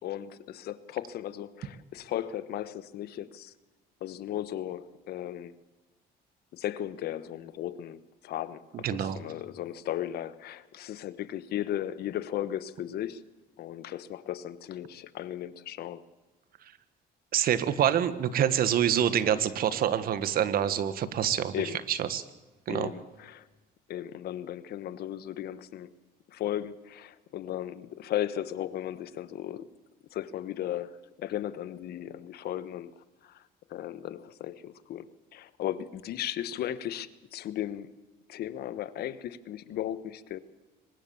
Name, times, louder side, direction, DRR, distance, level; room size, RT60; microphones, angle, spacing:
voice 1, 0.0-3.5 4.0-5.5 6.5-13.2 13.6-16.0 21.5-21.8 22.7-23.5 23.9-25.9 26.3-29.7 30.1-32.9 33.2-33.4 33.7-37.9 38.3-40.4, left 11 dB, 70° left, 1.2 m, -36 dB
voice 2, 8.8-9.2 17.3-21.6 21.9-22.2 22.7-22.9, right 9 dB, 60° right, 1.6 m, -26 dB
24.0 x 20.0 x 7.1 m
cardioid pair, 110°, 17 cm